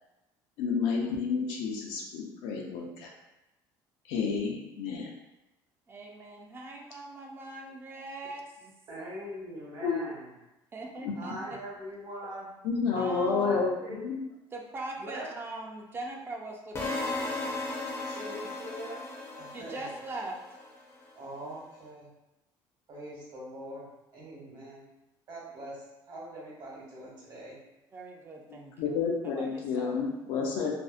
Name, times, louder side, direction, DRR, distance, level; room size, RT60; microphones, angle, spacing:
voice 1, 0.6-3.1 4.1-5.1 9.8-10.1 11.0-11.1 12.6-14.2 28.5-30.7, left 5 dB, 85° left, 0 dB, 0.5 m, -30 dB
voice 2, 5.9-8.7 10.7-11.3 12.9-13.7 14.5-17.5 19.5-20.4 27.9-29.1 29.3-30.0, right 2 dB, 25° right, 0 dB, 0.4 m, -41 dB
voice 3, 8.9-10.3 11.1-12.5 13.3-14.0 15.0-15.3 18.0-19.0 19.3-19.9 21.1-22.1 22.9-24.8 25.3-27.6, right 1 dB, 50° right, -5 dB, 1.0 m, -42 dB
sound 1, 16.8-20.8, left 2 dB, 30° left, 0.5 m, -36 dB
2.6 x 2.0 x 2.4 m, 0.96 s
cardioid pair, 120°, 9 cm